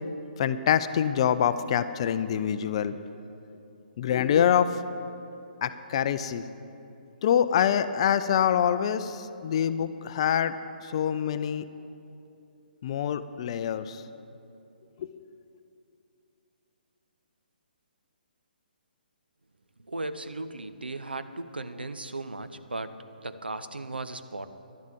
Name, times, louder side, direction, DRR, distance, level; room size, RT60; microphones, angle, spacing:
voice 1, 0.4-3.0 4.0-4.7 5.6-6.4 7.2-10.6 10.8-11.6 12.8-14.0 15.0-15.1, left 9 dB, 35° left, 13 dB, 0.4 m, -25 dB
voice 2, 19.8-24.5, right 2 dB, 75° right, 10 dB, 0.6 m, -36 dB
11.5 x 7.2 x 8.5 m, 2.7 s
figure-of-eight pair, 135°, 5 cm